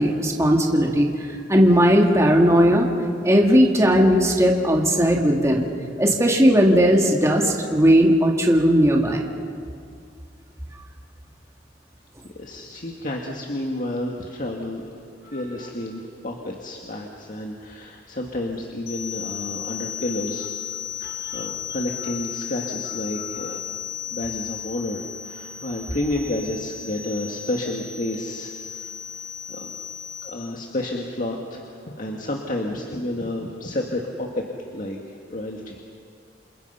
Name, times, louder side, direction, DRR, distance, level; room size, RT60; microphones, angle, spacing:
voice 1, 0.0-2.9 3.2-5.7 6.0-9.2 21.2-21.5 23.1-23.5, equal, 15° right, 0 dB, 2.3 m, -18 dB
voice 2, 12.2-15.0 15.3-20.5 21.0-23.6 24.1-28.9 29.5-29.8 30.2-34.4 34.7-35.8, left 1 dB, 45° left, 0 dB, 1.9 m, -30 dB
sound 1, 18.9-30.3, left 9 dB, 65° left, 4.6 m, -35 dB
28.5 x 28.0 x 5.7 m, 2.3 s
head